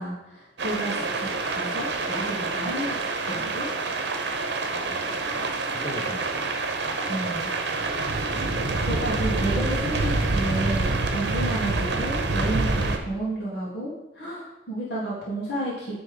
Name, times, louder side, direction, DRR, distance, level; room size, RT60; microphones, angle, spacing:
voice 1, 0.0-3.7 7.1-7.5 8.5-16.0, right 1 dB, 65° left, -8 dB, 1.9 m, -32 dB
sound 1, 0.6-13.0, right 3 dB, 70° right, 0.8 m, -27 dB
voice 2, 4.7-8.0, left 1 dB, 15° left, 2 dB, 0.8 m, -42 dB
9.4 x 3.6 x 5.1 m, 1.0 s
head